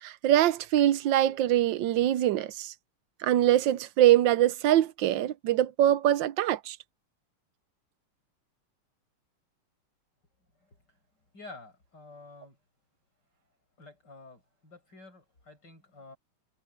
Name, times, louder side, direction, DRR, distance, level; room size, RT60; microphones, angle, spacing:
voice 1, 0.0-2.7 3.2-6.8, right 12 dB, 70° right, 1.3 m, -23 dB
voice 2, 10.6-11.0 11.3-12.6 13.8-16.2, left 3 dB, 50° left, 8.3 m, -50 dB
omnidirectional pair, 2.4 m